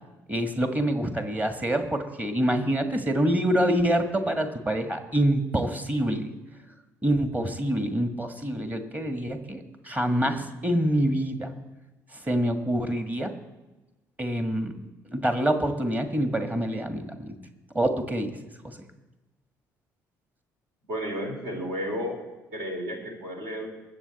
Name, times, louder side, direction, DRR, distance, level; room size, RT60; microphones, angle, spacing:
voice 1, 0.3-6.3 7.0-11.5 12.2-13.3 14.2-14.7 15.1-17.4 17.7-18.4 18.6-18.8, right 1 dB, 15° right, 7 dB, 1.6 m, -26 dB
voice 2, 20.9-22.2 22.5-23.7, equal, 60° right, 1 dB, 3.2 m, -32 dB
21.5 x 8.0 x 4.2 m, 1.1 s
figure-of-eight pair, 50°, 10 cm